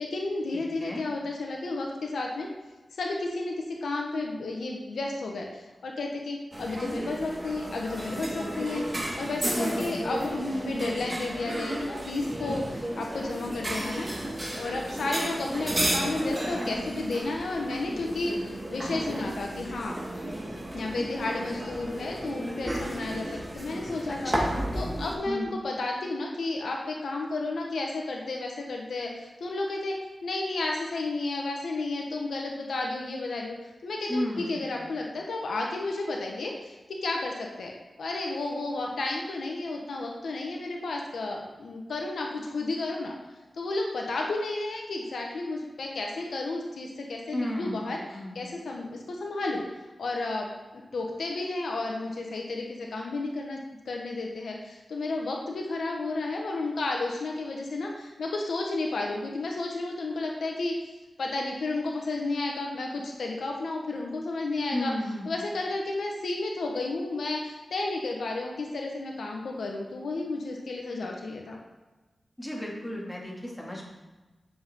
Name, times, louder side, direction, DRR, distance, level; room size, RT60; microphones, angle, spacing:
voice 1, 0.0-2.5 3.0-3.5 3.8-8.9 9.2-14.1 14.5-19.9 20.7-24.3 24.7-33.5 33.8-37.7 38.0-43.1 43.5-49.6 50.0-50.5 50.9-60.7 61.2-64.9 65.2-71.6, left 2 dB, 85° left, 0 dB, 1.3 m, -32 dB
voice 2, 0.5-1.0 9.5-10.1 24.1-24.6 25.3-25.5 34.1-34.8 47.3-48.5 64.7-65.3 72.4-73.8, left 1 dB, 10° left, -3 dB, 2.7 m, -34 dB
sound 1, 6.5-25.1, right 1 dB, 25° right, 2.1 m, -33 dB
10.5 x 7.1 x 3.8 m, 1.2 s
cardioid pair, 65°, 0 cm